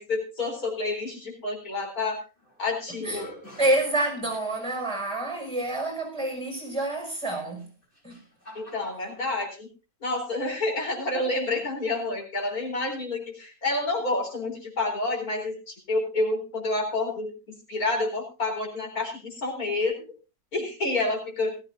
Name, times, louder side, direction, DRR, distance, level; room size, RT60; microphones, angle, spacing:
voice 1, 0.0-2.2 2.6-3.3 8.5-9.7 10.0-20.1 20.5-21.6, left 2 dB, 80° left, 4.5 m, -29 dB
sound 1, 2.2-2.6 3.0-4.8 5.6-5.7 7.5-9.2, equal, 35° left, 4.3 m, -46 dB
voice 2, 3.6-7.6 8.0-8.2, right 2 dB, 20° right, 6.2 m, -28 dB
18.5 x 14.5 x 2.7 m
omnidirectional pair, 1.5 m